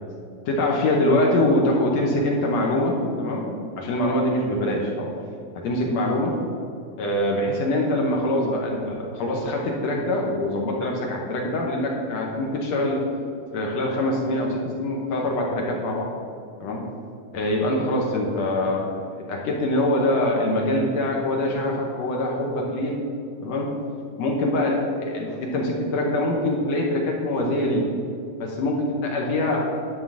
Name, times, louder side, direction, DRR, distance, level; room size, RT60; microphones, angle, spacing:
voice 1, 0.5-5.1 5.6-6.4 7.0-13.0 13.5-16.1 16.6-16.8 17.3-23.0 23.4-23.7 24.2-27.9 28.4-30.0, left 1 dB, 70° left, -1 dB, 2.0 m, -24 dB
11.0 x 3.8 x 7.3 m, 2.4 s
omnidirectional pair, 3.6 m